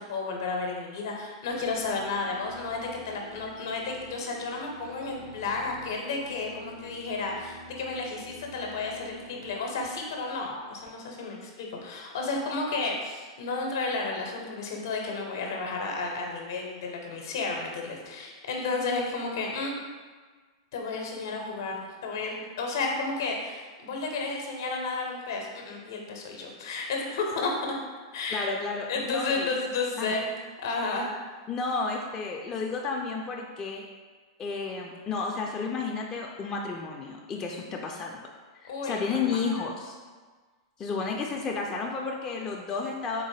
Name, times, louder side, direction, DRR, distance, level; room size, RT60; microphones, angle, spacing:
voice 1, 0.0-19.8 20.7-27.7 28.1-28.5 28.9-30.3 30.6-31.1 38.7-39.4, left 3 dB, 65° left, 1 dB, 0.6 m, -32 dB
sound 1, 1.5-11.5, equal, 35° right, 0.5 m, -48 dB
voice 2, 28.3-29.5 30.0-30.1 31.5-33.9 34.4-38.2 38.5-40.0 40.8-43.2, left 4 dB, 25° left, 0 dB, 0.3 m, -32 dB
3.9 x 2.1 x 3.1 m, 1.4 s
hypercardioid pair, 105°, 2 cm